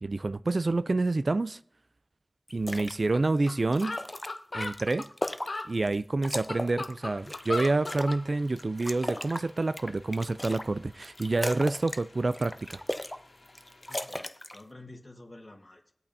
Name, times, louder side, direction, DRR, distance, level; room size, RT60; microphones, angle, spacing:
voice 1, 0.0-1.6 2.5-4.0 4.5-5.1 5.7-12.8, right 2 dB, 65° right, 0.3 m, -28 dB
sound 1, 2.5-3.0 3.4-6.0 6.2-8.2 8.6-10.7 11.0-12.0 12.3-13.2 13.5-14.6, left 1 dB, 20° left, 0.5 m, -37 dB
sound 2, 3.1-3.2 3.5-3.6 3.8-5.7 6.2-8.2, left 2 dB, 65° left, 0.7 m, -35 dB
sound 3, 7.0-14.1, left 2 dB, 85° left, 2.3 m, -57 dB
voice 2, 13.9-15.9, left 2 dB, 40° left, 1.6 m, -50 dB
20.0 x 8.7 x 2.7 m
wide cardioid pair, 65°, 0 cm